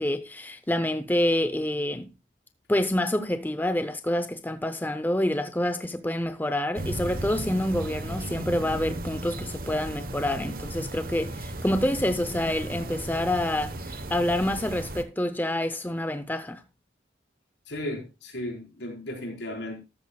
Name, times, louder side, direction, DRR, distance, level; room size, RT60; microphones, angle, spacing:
voice 1, 0.0-2.1 2.7-16.6, left 1 dB, 10° left, 0.6 m, -27 dB
sound 1, 6.7-15.0, right 1 dB, 50° right, 1.0 m, -35 dB
voice 2, 17.7-19.8, left 1 dB, 75° left, 4.5 m, -35 dB
13.5 x 13.0 x 2.3 m
head